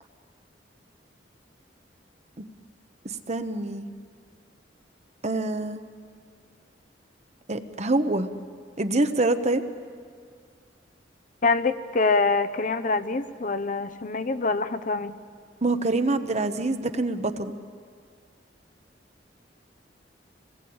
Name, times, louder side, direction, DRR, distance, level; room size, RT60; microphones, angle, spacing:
voice 1, 3.3-3.9 5.2-5.8 7.5-8.3 8.8-9.6 15.6-17.5, right 2 dB, 40° right, 9 dB, 1.1 m, -25 dB
voice 2, 11.4-15.1, left 3 dB, 45° left, 11 dB, 0.9 m, -25 dB
27.5 x 20.0 x 8.8 m, 2.1 s
head